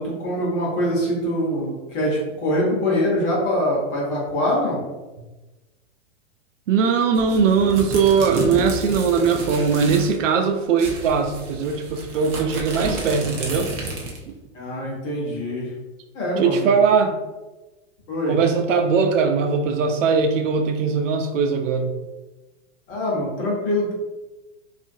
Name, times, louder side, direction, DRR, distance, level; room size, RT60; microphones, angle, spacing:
voice 1, 0.0-4.8 14.5-15.7 16.1-16.7 18.1-18.4 22.9-23.9, equal, 30° left, -4 dB, 0.8 m, -24 dB
voice 2, 6.7-13.7 16.4-17.2 18.3-21.9, right 5 dB, 85° right, 5 dB, 0.5 m, -20 dB
sound 1, 7.1-10.2 10.4-10.5 10.8-14.3, right 2 dB, 30° right, 0.4 m, -32 dB
2.7 x 2.4 x 2.6 m, 1.1 s
hypercardioid pair, 150°, 37 cm